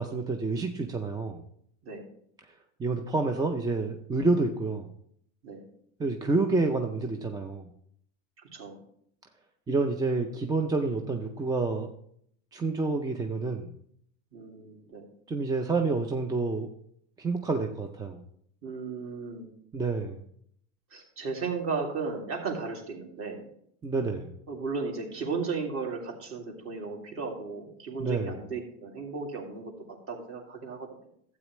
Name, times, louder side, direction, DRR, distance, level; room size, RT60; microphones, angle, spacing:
voice 1, 0.0-1.4 2.8-4.9 6.0-7.7 9.7-11.9 12.5-13.7 15.3-16.7 17.2-18.2 19.7-20.2 23.8-24.3 28.0-28.4, right 3 dB, 10° right, 4 dB, 0.5 m, -28 dB
voice 2, 14.3-15.1 18.6-19.5 20.9-23.5 24.5-29.7 30.1-30.9, right 4 dB, 35° right, 1 dB, 2.5 m, -35 dB
12.5 x 8.3 x 3.1 m, 0.69 s
supercardioid pair, 125°, 38 cm